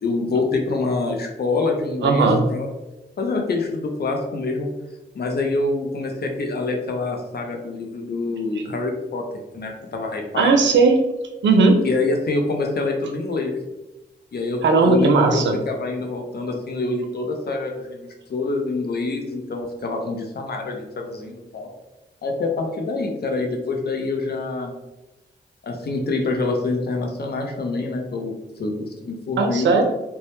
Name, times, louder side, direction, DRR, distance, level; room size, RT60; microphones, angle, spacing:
voice 1, 0.0-2.7 3.2-4.7 5.1-9.2 9.5-10.5 11.8-13.5 14.3-21.7 22.2-24.7 25.6-28.3 28.6-28.7 29.0-29.7, left 3 dB, 55° left, 2 dB, 0.6 m, -26 dB
voice 2, 2.0-2.4 10.3-11.0 11.4-11.8 14.6-15.5 29.4-29.8, right 4 dB, 70° right, 4 dB, 0.4 m, -16 dB
2.1 x 2.0 x 2.9 m, 1.0 s
supercardioid pair, 40°, 19 cm